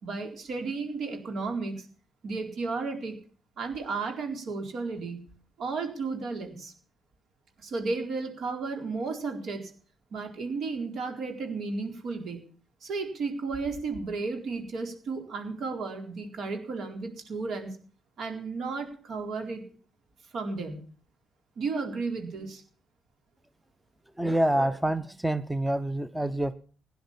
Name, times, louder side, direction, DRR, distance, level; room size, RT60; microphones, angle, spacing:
voice 1, 0.0-1.8 2.2-3.2 3.6-5.2 5.6-6.7 7.6-9.7 10.1-12.4 12.8-17.8 18.2-19.6 20.3-20.8 21.6-22.6, right 4 dB, 65° right, 4 dB, 4.2 m, -33 dB
voice 2, 24.2-26.5, right 1 dB, 5° right, 13 dB, 0.7 m, -27 dB
16.5 x 10.5 x 7.3 m, 0.42 s
cardioid pair, 90°, 0 cm